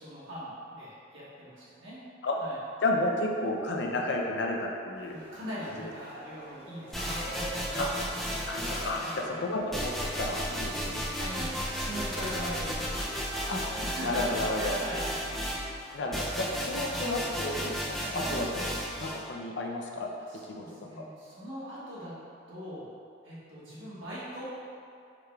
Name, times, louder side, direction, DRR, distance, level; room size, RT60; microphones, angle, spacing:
voice 1, 0.0-2.0 2.4-2.6 5.1-7.6 8.8-9.4 11.1-11.5 11.8-13.4 13.8-15.8 18.0-18.2 20.3-22.2 22.5-22.9 23.2-24.4, equal, 75° right, -9 dB, 1.5 m, -41 dB
voice 2, 2.8-5.2 7.8-7.9 8.4-11.1 13.5-14.8 15.9-18.7 19.0-20.1 20.6-20.7, left 2 dB, 60° left, 0 dB, 0.5 m, -32 dB
sound 1, 4.9-13.9, right 1 dB, 35° left, 0.8 m, -45 dB
sound 2, 6.9-9.2 9.7-19.2, equal, ahead, 0.4 m, -34 dB
4.8 x 4.8 x 2.3 m, 2.4 s
head